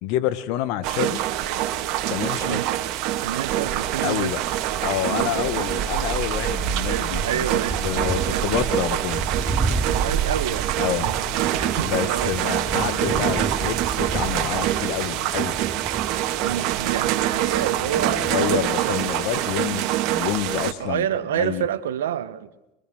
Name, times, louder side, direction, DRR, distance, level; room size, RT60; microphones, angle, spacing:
voice 1, 0.0-1.2 2.1-2.6 4.0-4.4 4.8-7.4 7.8-9.3 10.8-11.1 11.8-15.6 17.9-21.1 21.3-21.7, left 12 dB, 65° left, 13 dB, 1.7 m, -28 dB
sound 1, 0.8-20.7, right 12 dB, 60° right, 2.0 m, -25 dB
voice 2, 3.2-4.3 5.1-5.4 6.7-7.9 8.2-8.5 9.9-11.2 11.5-12.4 16.4-19.0 20.8-22.5, right 10 dB, 85° right, 12 dB, 1.5 m, -29 dB
Thunder, 3.6-19.3, right 2 dB, 10° right, 6.6 m, -34 dB
sound 2, 6.0-6.9 7.3-7.4 8.3-12.6, equal, 90° left, 7.0 m, -47 dB
25.5 x 22.5 x 6.4 m, 0.93 s
hypercardioid pair, 85°, 0 cm